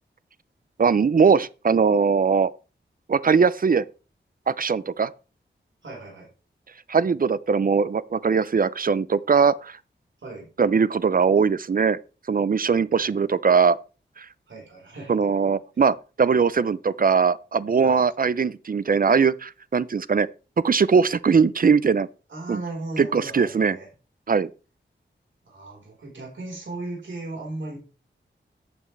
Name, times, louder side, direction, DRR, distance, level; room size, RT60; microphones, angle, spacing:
voice 1, 0.8-2.5 3.1-3.8 4.5-5.1 6.9-9.8 10.6-12.0 12.3-13.8 14.2-14.3 15.1-20.3 20.6-22.1 22.5-22.6 23.0-23.8 24.3-24.5, right 5 dB, 45° right, 0.6 m, -20 dB
voice 2, 5.8-6.3 10.2-10.5 13.0-13.2 14.5-15.2 17.8-18.0 22.3-23.9 25.5-27.8, right 2 dB, 80° right, 4.4 m, -36 dB
14.0 x 8.7 x 3.3 m
wide cardioid pair, 100°, 20 cm